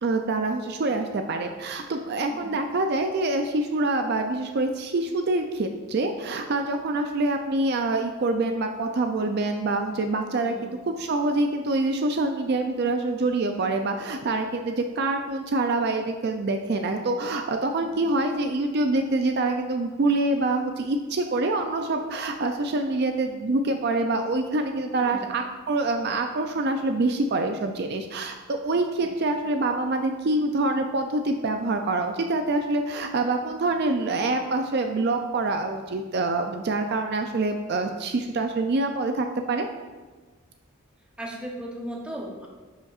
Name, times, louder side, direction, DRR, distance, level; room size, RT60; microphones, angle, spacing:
voice 1, 0.0-39.7, right 2 dB, 50° right, 5 dB, 0.4 m, -26 dB
voice 2, 10.4-10.8 17.8-18.1 25.0-25.4 29.0-29.1 41.2-42.5, right 1 dB, 5° right, -1 dB, 0.9 m, -38 dB
10.5 x 5.4 x 2.5 m, 1.3 s
head